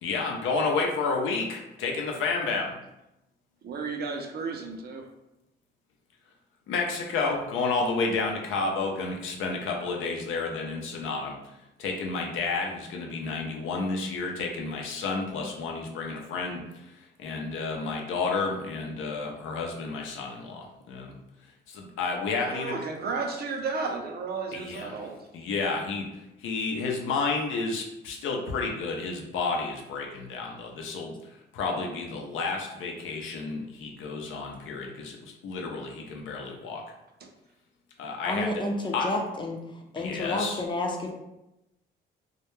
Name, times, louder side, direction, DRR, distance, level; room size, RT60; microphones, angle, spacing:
voice 1, 0.0-2.7 6.7-21.1 21.7-22.8 24.5-25.1 25.3-36.8 38.0-38.6 38.9-39.1 40.0-40.6, left 4 dB, 80° left, 1 dB, 0.5 m, -31 dB
voice 2, 3.6-5.1 22.5-25.3 37.2-37.3, right 4 dB, 55° right, 3 dB, 0.5 m, -33 dB
voice 3, 38.2-39.6 39.9-41.1, left 2 dB, 25° left, 1 dB, 0.5 m, -30 dB
2.2 x 2.1 x 3.0 m, 0.90 s
cardioid pair, 90°, 20 cm